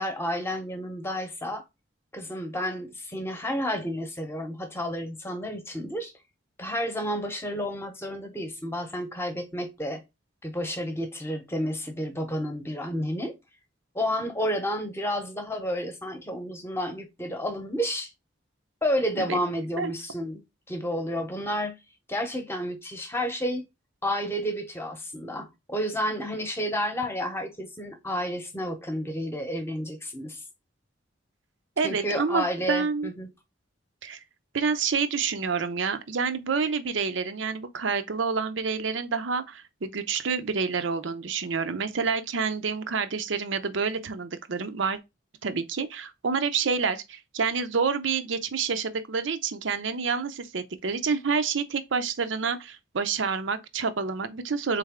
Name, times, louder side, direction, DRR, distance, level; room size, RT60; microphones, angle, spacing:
voice 1, 0.0-1.6 2.1-6.1 6.6-10.0 10.4-13.3 13.9-18.1 18.8-20.4 20.7-21.7 22.1-23.7 24.0-30.4 31.8-33.3, equal, 10° left, 0.9 m, -31 dB
voice 2, 31.8-33.1 34.0-34.2 34.5-45.0 45.4-54.8, right 5 dB, 75° right, 0.6 m, -28 dB
4.0 x 3.3 x 3.6 m
head